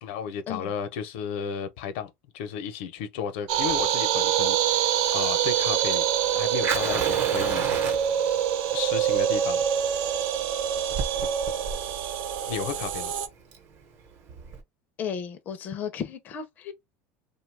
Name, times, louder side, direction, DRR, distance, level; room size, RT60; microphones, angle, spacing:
voice 1, 0.0-6.0 6.3-7.8 8.7-9.6 12.5-13.1, left 7 dB, 80° left, 0.7 m, -33 dB
Fire, 3.5-14.6, right 5 dB, 45° right, 0.9 m, -35 dB
sound 1, 3.5-13.3, right 9 dB, 65° right, 0.5 m, -25 dB
voice 2, 15.0-16.7, left 7 dB, 30° left, 0.5 m, -34 dB
2.7 x 2.2 x 3.2 m
cardioid pair, 150°, 6 cm